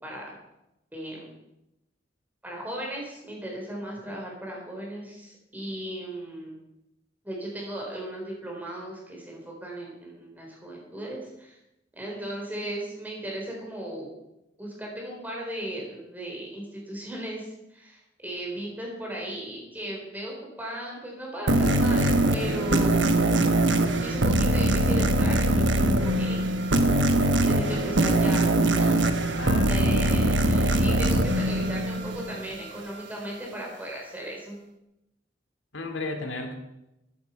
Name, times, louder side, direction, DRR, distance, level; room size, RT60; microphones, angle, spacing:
voice 1, 0.0-0.4 0.9-1.3 2.4-6.5 7.2-11.6 11.9-14.1 14.6-23.2 24.0-26.5 27.4-28.5 28.8-28.9 29.7-34.6, right 1 dB, 10° right, -2 dB, 4.4 m, -36 dB
sound 1, 21.5-32.6, right 1 dB, 70° right, 1.2 m, -22 dB
voice 2, 23.4-23.7 29.4-30.3 35.7-36.6, left 2 dB, 85° left, 4 dB, 2.4 m, -35 dB
13.5 x 11.0 x 5.6 m, 0.89 s
head